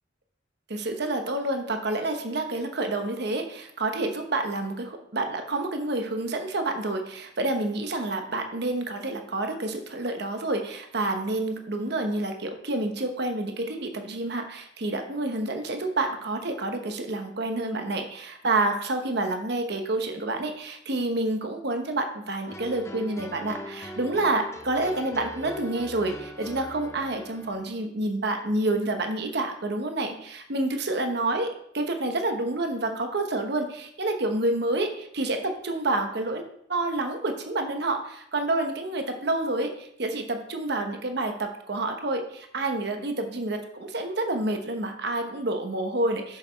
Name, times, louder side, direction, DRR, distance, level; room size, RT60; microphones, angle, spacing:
voice 1, 0.7-31.5 31.7-46.4, right 2 dB, 55° right, 5 dB, 1.0 m, -28 dB
sound 1, 22.5-27.7, left 1 dB, 15° left, 0.6 m, -40 dB
7.0 x 6.5 x 4.5 m, 0.70 s
head